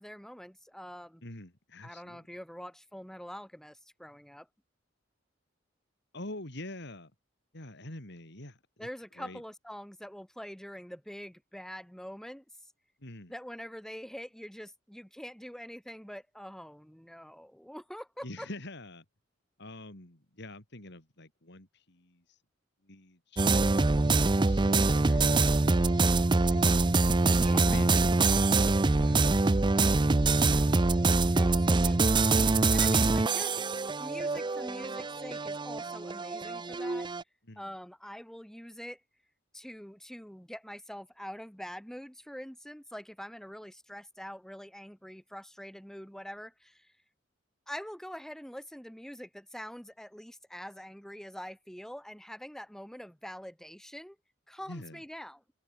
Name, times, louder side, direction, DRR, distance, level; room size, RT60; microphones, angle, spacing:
voice 1, 0.0-1.2 1.8-4.5 8.8-12.4 13.3-18.5 27.3-27.9 31.2-32.1 32.7-33.5 34.0-37.1 37.6-39.0 39.5-46.9 47.7-54.2 54.5-55.4, equal, 5° left, 1.2 m, -44 dB
voice 2, 1.2-2.3 6.1-7.1 7.5-8.9 9.2-9.4 13.0-13.3 18.2-19.0 19.6-22.2 22.8-23.4 23.7-25.7 26.4-26.9 27.7-29.7 30.4-30.8 37.5-37.7 54.7-55.0, left 1 dB, 65° left, 3.9 m, -46 dB
sound 1, 23.4-37.2, right 3 dB, 25° right, 0.5 m, -25 dB
open air
head